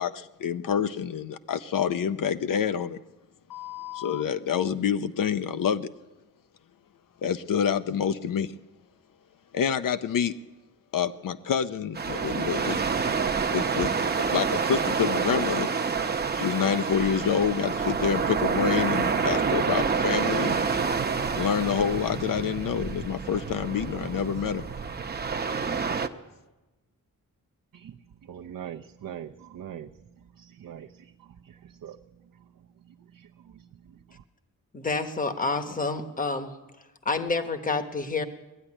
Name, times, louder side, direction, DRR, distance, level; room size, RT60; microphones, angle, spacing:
voice 1, 0.0-3.0 3.5-5.9 7.2-8.5 9.5-10.4 10.9-12.9 13.5-13.9 14.3-15.7 16.3-20.7 21.4-24.6, left 8 dB, 70° left, 12 dB, 0.7 m, -27 dB
sound 1, 12.0-26.1, right 5 dB, 30° right, 0.8 m, -28 dB
voice 2, 28.2-29.9 30.4-31.1 31.4-32.0 33.1-33.3 33.5-33.6 33.9-34.0, right 9 dB, 70° right, 3 dB, 0.7 m, -42 dB
voice 3, 34.7-36.5 37.0-38.2, left 3 dB, 25° left, 8 dB, 1.2 m, -28 dB
20.5 x 13.0 x 9.9 m, 1.1 s
wide cardioid pair, 180°, 35 cm